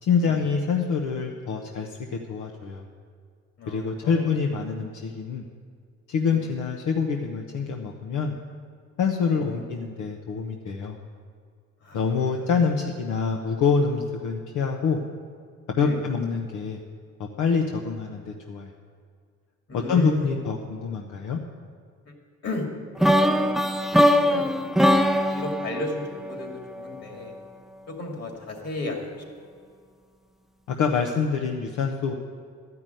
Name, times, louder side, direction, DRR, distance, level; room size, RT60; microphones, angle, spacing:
voice 1, 0.0-2.8 3.7-5.4 6.1-8.4 9.0-11.0 11.9-15.0 15.8-16.8 17.2-18.7 19.9-21.4 30.8-32.1, left 5 dB, 80° left, 2 dB, 0.9 m, -26 dB
voice 2, 3.6-4.3 6.3-6.4 9.2-9.6 11.8-12.0 12.3-12.5 15.8-16.0 19.7-20.3 22.0-22.1 22.4-22.7 23.0-23.5 24.0-25.0 25.3-27.3 27.9-29.2, left 2 dB, 55° left, 1 dB, 2.7 m, -33 dB
sound 1, 23.0-27.0, equal, ahead, 0.5 m, -21 dB
12.5 x 5.9 x 9.1 m, 2.1 s
cardioid pair, 90°, 30 cm